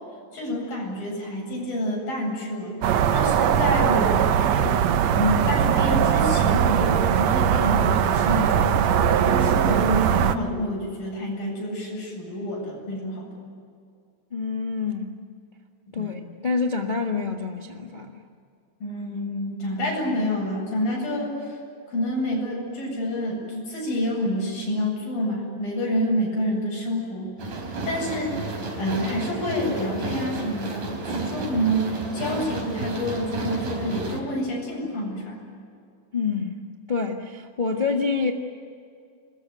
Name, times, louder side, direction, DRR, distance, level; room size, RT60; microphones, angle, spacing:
voice 1, 0.3-4.8 5.2-8.9 9.2-13.3 15.9-16.2 18.8-21.6 21.9-27.3 27.8-28.4 28.8-35.4, equal, 80° left, -1 dB, 9.9 m, -28 dB
sound 1, 2.8-10.4, right 8 dB, 65° right, 1.9 m, -20 dB
voice 2, 14.3-15.1 15.9-18.2 36.1-36.6 36.9-38.3, left 4 dB, 35° left, 2 dB, 0.8 m, -27 dB
sound 2, 27.4-34.2, right 3 dB, 85° right, 6.0 m, -32 dB
26.5 x 21.5 x 9.4 m, 2.3 s
omnidirectional pair, 4.0 m